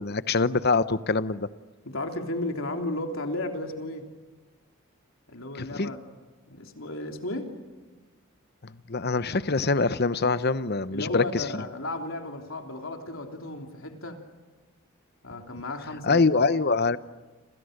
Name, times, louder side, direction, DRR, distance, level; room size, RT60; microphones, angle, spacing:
voice 1, 0.0-1.5 5.6-5.9 8.6-11.6 16.0-17.0, left 3 dB, 50° left, 14 dB, 0.9 m, -24 dB
voice 2, 1.8-4.1 5.3-6.0 6.5-7.5 10.9-14.2 15.2-16.5, left 2 dB, 70° left, 4 dB, 3.4 m, -34 dB
29.5 x 27.5 x 6.7 m, 1.3 s
head